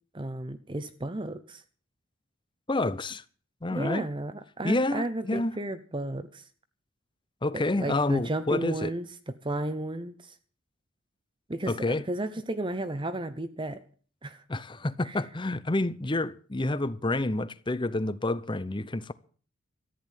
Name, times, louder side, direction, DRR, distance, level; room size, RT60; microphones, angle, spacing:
voice 1, 0.1-1.6 3.7-6.4 7.8-10.4 11.5-13.8 14.2-14.4 15.0-15.2, right 1 dB, 25° right, 0.8 m, -33 dB
voice 2, 2.7-3.2 3.6-4.1 4.6-5.5 7.4-8.9 11.7-12.0 14.5-19.1, left 2 dB, 20° left, 0.7 m, -28 dB
14.0 x 10.5 x 7.4 m
head